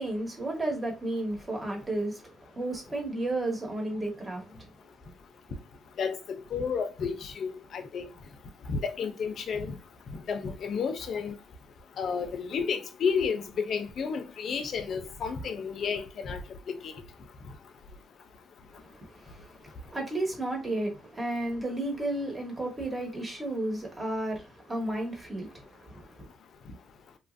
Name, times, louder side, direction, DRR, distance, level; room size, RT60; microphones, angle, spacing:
voice 1, 0.0-4.7 18.7-26.3, right 1 dB, 25° right, 1.2 m, -33 dB
voice 2, 6.0-8.1 8.7-9.8 10.1-11.4 12.0-16.4 16.7-17.0, left 6 dB, 60° left, 0.6 m, -31 dB
2.9 x 2.4 x 2.5 m
cardioid pair, 90°, 0 cm